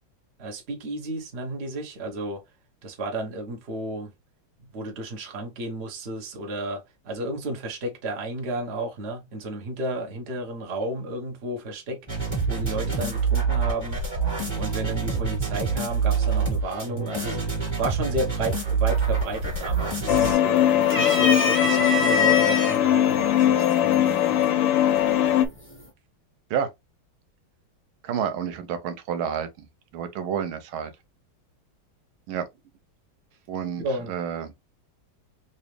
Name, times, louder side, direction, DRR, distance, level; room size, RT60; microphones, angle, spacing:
voice 1, 0.4-2.4 2.8-4.1 4.6-14.0 14.5-17.4 17.7-24.5 33.8-34.1, right 1 dB, 40° right, 1.0 m, -33 dB
sound 1, 12.1-20.3, right 5 dB, 15° right, 1.7 m, -26 dB
sound 2, 19.0-19.4 19.7-20.4 20.8-22.8 23.6-23.7 25.0-25.4, left 3 dB, 10° left, 0.5 m, -25 dB
sound 3, 20.1-25.5, left 11 dB, 75° left, 1.2 m, -20 dB
voice 2, 28.0-29.7 29.9-30.9 32.3-32.5 33.5-34.5, right 8 dB, 85° right, 1.6 m, -29 dB
4.0 x 2.7 x 3.2 m
omnidirectional pair, 2.2 m